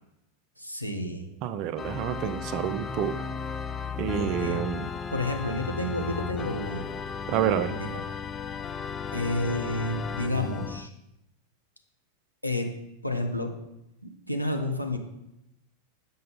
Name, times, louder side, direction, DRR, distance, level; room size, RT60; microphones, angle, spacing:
voice 1, 0.6-1.3 4.2-4.7 5.1-6.9 7.7-8.0 9.1-10.9 12.4-12.7 13.0-13.5 14.0-15.0, left 1 dB, 90° left, 3 dB, 0.8 m, -30 dB
voice 2, 1.4-3.2 4.0-4.9 7.3-7.7, right 9 dB, 40° right, 12 dB, 0.5 m, -28 dB
Organ, 1.8-10.9, left 6 dB, 20° left, 0.3 m, -35 dB
7.6 x 5.5 x 3.9 m, 0.87 s
figure-of-eight pair, 90°, 0 cm